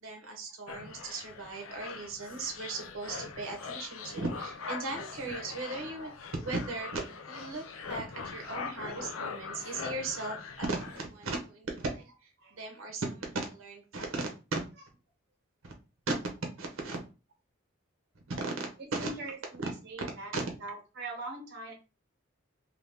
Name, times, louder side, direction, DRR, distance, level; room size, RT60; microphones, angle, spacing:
voice 1, 0.0-7.0 7.3-12.3 12.6-14.3 15.6-15.7 16.6-17.0 18.3-18.4 18.9-19.1 19.6-19.7 20.3-20.5, right 3 dB, 85° right, 2 dB, 0.8 m, -37 dB
sound 1, 0.7-11.0, left 5 dB, 85° left, 0.5 m, -42 dB
voice 2, 19.0-20.3 20.6-21.7, right 2 dB, 55° right, 2 dB, 1.0 m, -41 dB
2.8 x 2.7 x 3.4 m, 0.31 s
head